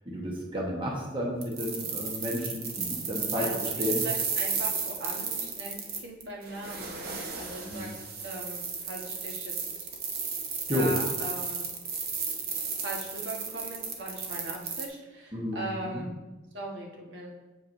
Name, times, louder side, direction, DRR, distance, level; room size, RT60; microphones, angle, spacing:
voice 1, 0.0-4.0 7.6-7.9 10.7-10.9 15.3-16.1, left 1 dB, 25° right, -2 dB, 1.1 m, -32 dB
sound 1, 1.4-14.8, right 5 dB, 50° right, 0.8 m, -34 dB
voice 2, 3.3-7.9 8.2-9.5 10.7-11.7 12.8-16.1 16.5-17.3, right 1 dB, 75° right, -2 dB, 1.3 m, -39 dB
7.5 x 7.1 x 2.6 m, 1.1 s
head